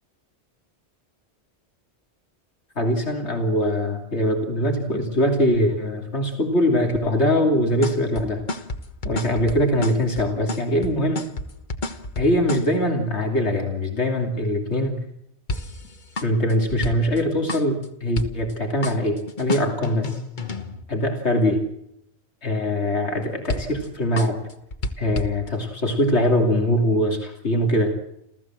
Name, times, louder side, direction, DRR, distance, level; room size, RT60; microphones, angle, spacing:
voice 1, 2.8-8.4 9.0-11.2 12.2-15.0 16.2-20.2 20.9-21.6 22.4-24.4 25.0-27.9, left 1 dB, 75° left, 3 dB, 3.1 m, -22 dB
sound 1, 7.7-12.7 15.5-17.2 17.5-17.9 18.2-18.5 18.8-20.8 23.5-23.9 24.2-25.3, left 2 dB, 45° left, 1.4 m, -30 dB
29.5 x 14.5 x 7.5 m, 0.77 s
omnidirectional pair, 1.2 m